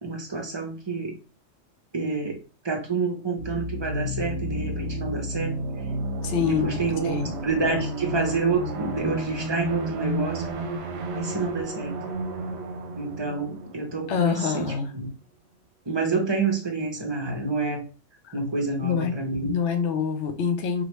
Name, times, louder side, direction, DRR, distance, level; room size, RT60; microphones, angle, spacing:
voice 1, 0.0-1.2 1.9-2.4 2.6-5.6 6.4-10.5 11.1-12.0 13.0-15.1 15.9-17.8 18.3-19.5, right 4 dB, 30° right, 2 dB, 0.5 m, -28 dB
sound 1, 3.4-14.9, right 1 dB, 70° right, 0.9 m, -32 dB
voice 2, 6.2-6.8 7.0-7.3 14.1-14.9 18.2-18.4 18.8-19.1 19.5-20.8, left 6 dB, 70° left, 5 dB, 0.9 m, -25 dB
3.1 x 2.3 x 3.0 m, 0.33 s
omnidirectional pair, 1.3 m